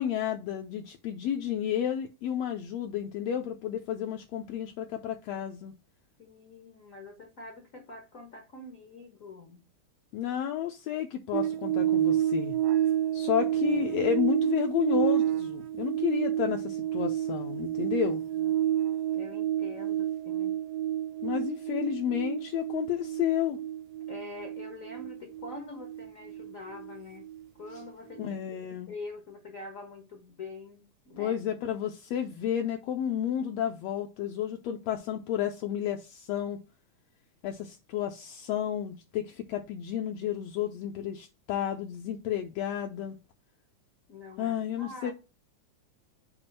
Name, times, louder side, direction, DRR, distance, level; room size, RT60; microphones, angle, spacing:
voice 1, 0.0-5.7 10.1-12.6 13.1-18.2 21.2-23.6 28.2-28.9 31.2-36.6 37.4-43.1 44.4-45.1, left 10 dB, 75° left, 1.6 m, -31 dB
voice 2, 6.2-9.6 18.4-18.6 19.1-20.5 24.1-27.3 27.6-31.4 44.1-45.1, left 3 dB, 60° left, 0.8 m, -45 dB
sound 1, 11.3-27.9 28.2-28.3, right 11 dB, 75° right, 1.5 m, -30 dB
7.0 x 2.5 x 5.3 m
omnidirectional pair, 3.3 m